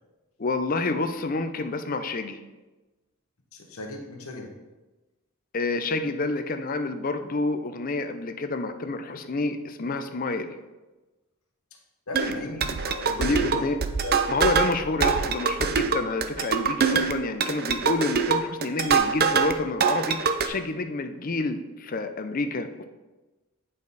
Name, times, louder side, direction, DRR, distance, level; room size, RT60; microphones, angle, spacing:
voice 1, 0.4-2.4 5.5-10.6 12.2-12.3 12.6-12.8 13.2-13.8 14.3-22.8, left 3 dB, 40° left, 7 dB, 0.5 m, -29 dB
voice 2, 3.5-4.5 12.1-13.7 14.0-14.2, left 2 dB, 85° left, 1 dB, 1.1 m, -36 dB
sound 1, 12.1-19.6 19.8-20.5, right 6 dB, 45° right, 0.5 m, -24 dB
8.6 x 5.0 x 4.1 m, 1.1 s
head